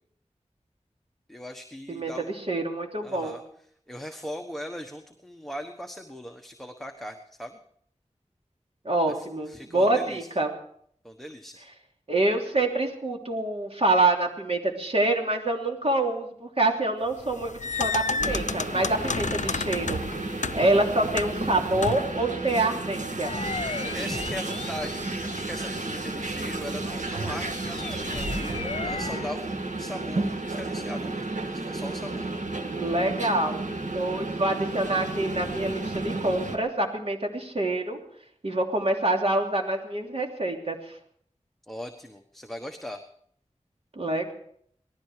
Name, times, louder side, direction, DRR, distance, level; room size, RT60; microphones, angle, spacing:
voice 1, 1.3-2.3 3.0-3.4 3.9-7.6 9.1-10.3 11.0-11.6 23.9-32.3 41.7-43.0, equal, ahead, 4 dB, 1.3 m, -39 dB
voice 2, 2.5-3.4 8.8-10.5 12.1-23.3 32.7-33.6 33.9-38.0 38.4-40.9 43.9-44.3, right 2 dB, 55° right, 1 dB, 3.2 m, -26 dB
sound 1, 17.2-22.2, left 4 dB, 80° left, 0.5 m, -31 dB
sound 2, 18.2-36.6, right 2 dB, 90° right, 1.7 m, -32 dB
sound 3, 23.0-26.0 26.6-29.4, left 3 dB, 50° left, 1.2 m, -36 dB
19.0 x 14.0 x 5.0 m, 0.65 s
wide cardioid pair, 55°, 12 cm